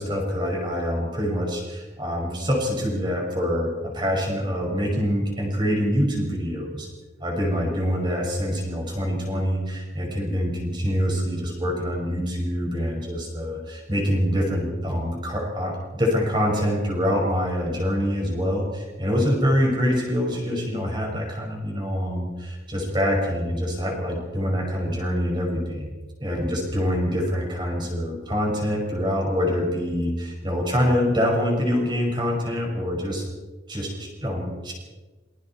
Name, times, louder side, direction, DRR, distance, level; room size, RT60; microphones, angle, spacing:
voice 1, 0.0-6.9 7.2-25.9 26.2-33.3 33.7-34.7, equal, 25° right, -1 dB, 6.1 m, -25 dB
27.0 x 22.0 x 4.6 m, 1.2 s
head